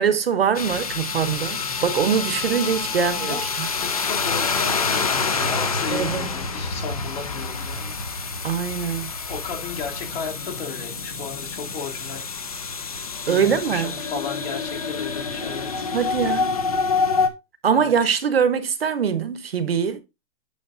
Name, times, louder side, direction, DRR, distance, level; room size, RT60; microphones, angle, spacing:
voice 1, 0.0-3.7 5.9-6.3 8.4-9.1 13.3-13.9 15.9-16.5 17.6-20.0, right 7 dB, 45° right, 0.9 m, -23 dB
sound 1, 0.5-17.3, left 4 dB, 25° left, 0.6 m, -27 dB
voice 2, 2.5-7.9 9.3-12.2 13.2-15.9 17.7-18.1, left 5 dB, 45° left, 2.8 m, -35 dB
9.7 x 6.5 x 2.5 m
hypercardioid pair, 175°, 42 cm